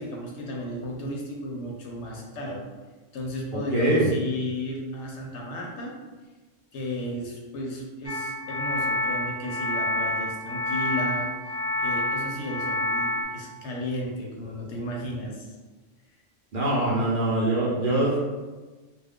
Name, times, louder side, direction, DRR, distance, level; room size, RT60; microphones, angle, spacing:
voice 1, 0.0-2.6 3.1-6.0 6.7-15.5 17.0-17.1 18.1-18.2, equal, 70° left, -1 dB, 0.8 m, -34 dB
voice 2, 3.7-4.1 16.5-18.1, right 1 dB, 50° right, -7 dB, 0.7 m, -23 dB
sound 1, 8.0-13.2, left 1 dB, 5° left, 0.8 m, -28 dB
2.3 x 2.2 x 3.5 m, 1.3 s
omnidirectional pair, 1.3 m